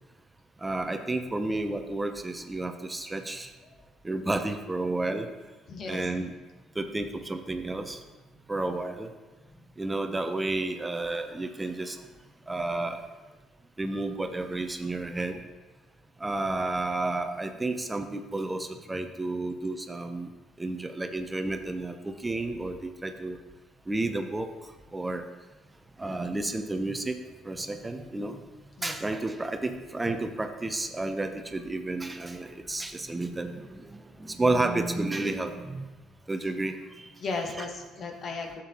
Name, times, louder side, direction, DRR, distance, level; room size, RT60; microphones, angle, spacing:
voice 1, 0.6-3.5 4.0-5.3 5.9-6.3 6.8-8.0 8.5-9.1 9.8-12.0 12.5-13.0 13.8-15.4 16.2-20.3 20.6-23.4 23.9-24.5 24.9-25.2 26.0-27.2 27.5-28.4 28.8-33.5 33.8-35.9 36.3-36.7, right 2 dB, 20° right, 6 dB, 0.9 m, -31 dB
voice 2, 5.7-6.1 28.8-29.0 37.2-38.6, left 3 dB, 50° left, 3 dB, 1.4 m, -35 dB
13.0 x 7.7 x 3.0 m, 1.2 s
hypercardioid pair, 55°, 0 cm